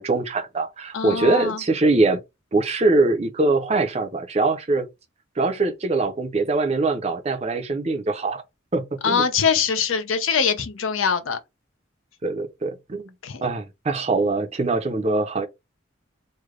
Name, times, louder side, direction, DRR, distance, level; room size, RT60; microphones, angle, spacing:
voice 1, 0.0-2.2 2.5-4.9 5.4-8.4 8.7-9.3 12.2-13.1 13.4-15.5, right 3 dB, 30° right, 0.5 m, -22 dB
voice 2, 0.9-1.6 9.0-11.4 13.2-13.4, left 6 dB, 85° left, 0.6 m, -23 dB
3.2 x 2.1 x 3.6 m
head